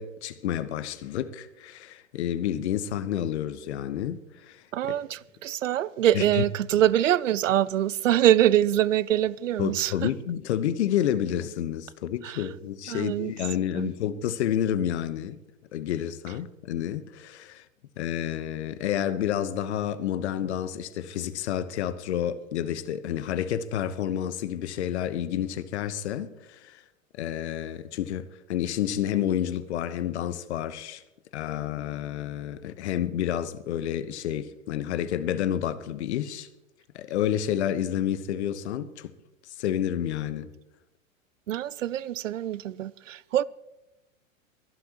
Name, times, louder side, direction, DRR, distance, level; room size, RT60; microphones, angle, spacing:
voice 1, 0.0-4.9 6.1-6.4 6.7-6.8 9.6-15.4 15.7-17.6 18.0-26.8 27.2-31.0 31.3-36.5 36.9-39.1 39.6-40.5, left 10 dB, 55° left, 1.1 m, -29 dB
voice 2, 4.7-10.1 12.2-12.4 12.9-13.3 13.7-13.9 41.5-43.4, right 12 dB, 70° right, 0.6 m, -24 dB
23.5 x 11.5 x 3.0 m
figure-of-eight pair, 95°, 40 cm